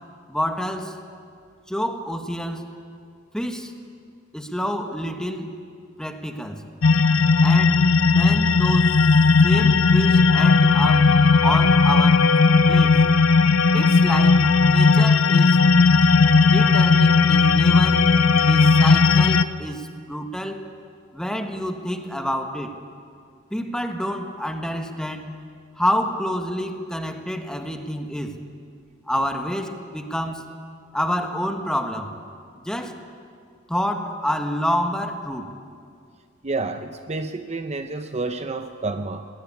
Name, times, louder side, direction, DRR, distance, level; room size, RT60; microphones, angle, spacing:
voice 1, 0.3-1.0 1.7-2.7 3.3-3.7 4.3-5.5 6.0-6.6 7.4-9.0 9.4-11.1 11.4-12.3 12.7-13.0 13.7-15.6 16.4-20.7 21.1-22.7 23.5-25.4 25.7-28.4 29.1-30.5 30.9-32.1 32.6-33.0 33.7-35.5, equal, 5° left, 5 dB, 1.5 m, -28 dB
sound 1, 6.8-19.4, left 4 dB, 70° left, 0.7 m, -16 dB
voice 2, 36.4-39.3, right 3 dB, 35° right, 8 dB, 0.7 m, -29 dB
22.0 x 18.0 x 8.6 m, 2.2 s
head